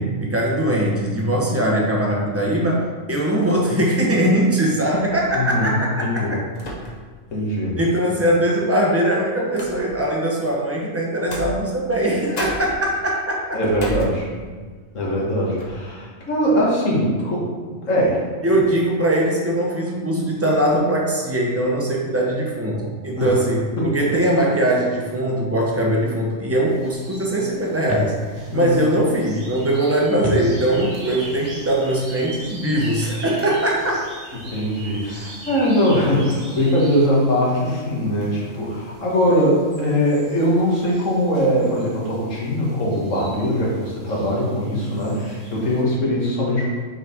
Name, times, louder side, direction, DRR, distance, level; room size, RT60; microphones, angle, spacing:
voice 1, 0.0-6.4 7.8-13.6 18.4-34.1, right 1 dB, 15° right, -2 dB, 0.8 m, -21 dB
sound 1, 5.2-5.5 6.5-7.3 7.6-7.7 8.7-10.2 11.2-12.1 12.4-14.7 15.1-15.3 15.6-15.9, equal, 35° left, 0.9 m, -34 dB
voice 2, 5.3-6.3 7.3-7.8 13.5-14.3 14.9-18.2 23.2-23.4 23.8-23.9 28.5-28.8 34.4-46.7, equal, 75° left, -4 dB, 1.8 m, -21 dB
sound 2, 26.7-45.8, right 1 dB, 60° right, 1.5 m, -41 dB
6.4 x 4.2 x 3.5 m, 1.5 s
omnidirectional pair, 1.3 m